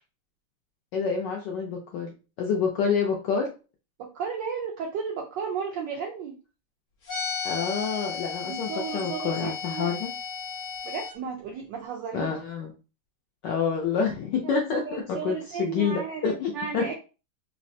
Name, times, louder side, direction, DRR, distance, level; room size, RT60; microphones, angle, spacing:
voice 1, 0.9-3.5 7.4-10.1 12.1-12.7 13.4-16.8, left 6 dB, 80° left, 0 dB, 1.0 m, -28 dB
voice 2, 4.0-6.3 8.5-9.9 10.8-12.4 14.4-16.9, right 6 dB, 80° right, 1 dB, 1.0 m, -34 dB
sound 1, 7.1-11.1, left 5 dB, 55° left, 0.9 m, -34 dB
3.9 x 2.0 x 2.6 m, 0.32 s
omnidirectional pair, 2.4 m